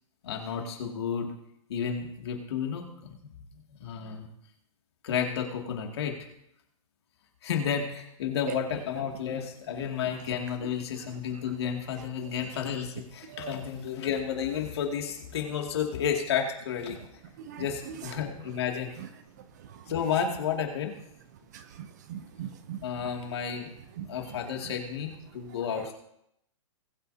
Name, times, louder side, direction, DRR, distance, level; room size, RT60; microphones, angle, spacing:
voice 1, 0.2-1.3 1.7-3.3 3.8-4.3 5.0-6.2 7.4-17.0 17.6-18.9 19.9-20.9 22.8-23.7 24.1-25.9, left 7 dB, 50° left, 2 dB, 2.4 m, -31 dB
voice 2, 21.5-22.8 24.0-24.1, right 10 dB, 30° right, 11 dB, 0.7 m, -39 dB
20.5 x 8.1 x 2.8 m, 0.76 s
hypercardioid pair, 175°, 17 cm